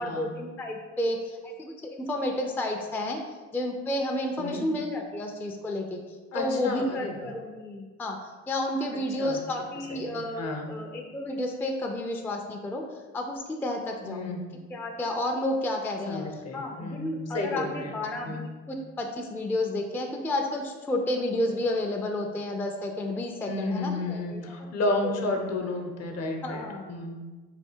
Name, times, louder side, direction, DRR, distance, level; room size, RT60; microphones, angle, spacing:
voice 1, 0.0-3.2 3.5-6.0 6.3-8.2 8.5-12.8 13.1-14.3 14.7-16.2 16.5-24.4 24.8-25.1 25.6-25.7 26.4-26.9, left 1 dB, 5° left, 2 dB, 0.3 m, -31 dB
voice 2, 4.4-4.7 6.3-7.3 9.2-9.4 9.9-10.8 14.0-14.4 16.1-18.5 23.5-27.2, left 2 dB, 55° left, 3 dB, 0.8 m, -32 dB
3.3 x 2.7 x 4.4 m, 1.3 s
cardioid pair, 90°, 30 cm